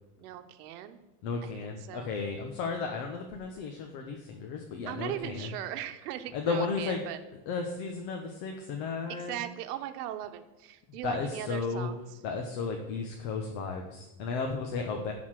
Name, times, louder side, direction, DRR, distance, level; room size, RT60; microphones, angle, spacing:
voice 1, 0.2-1.0 1.4-2.2 4.9-7.2 9.1-12.0, right 12 dB, 75° right, 9 dB, 1.1 m, -39 dB
voice 2, 1.2-5.5 6.3-7.0 7.5-9.4 11.0-11.9 12.2-15.1, left 4 dB, 50° left, 2 dB, 1.2 m, -34 dB
11.0 x 4.2 x 7.5 m, 1.1 s
supercardioid pair, 170°, 46 cm